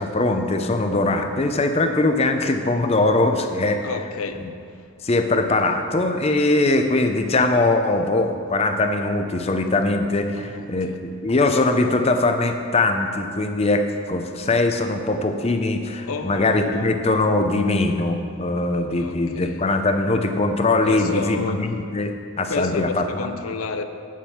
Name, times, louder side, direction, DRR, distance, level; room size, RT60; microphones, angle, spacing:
voice 1, 0.0-3.8 4.4-4.5 5.0-23.3, left 2 dB, 30° left, 6 dB, 0.6 m, -21 dB
voice 2, 3.8-4.4 10.4-11.0 16.0-17.0 18.9-19.6 20.9-21.6 22.5-23.8, left 4 dB, 80° left, 9 dB, 0.6 m, -31 dB
9.0 x 7.3 x 5.6 m, 2.4 s
head